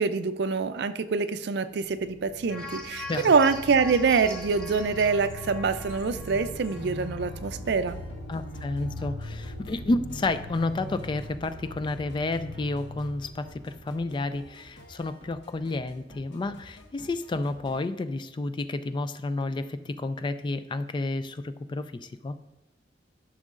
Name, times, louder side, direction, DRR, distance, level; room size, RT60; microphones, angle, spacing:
voice 1, 0.0-8.0, right 5 dB, 65° right, 11 dB, 0.4 m, -25 dB
sound 1, 1.8-14.5, left 1 dB, 65° left, 3.0 m, -41 dB
sound 2, 2.5-7.2 7.5-7.6, left 2 dB, 5° left, 1.2 m, -42 dB
sound 3, 3.7-17.9, equal, 80° left, 1.1 m, -51 dB
voice 2, 8.3-22.4, left 2 dB, 25° left, 12 dB, 0.3 m, -31 dB
13.5 x 6.3 x 2.5 m, 1.1 s
head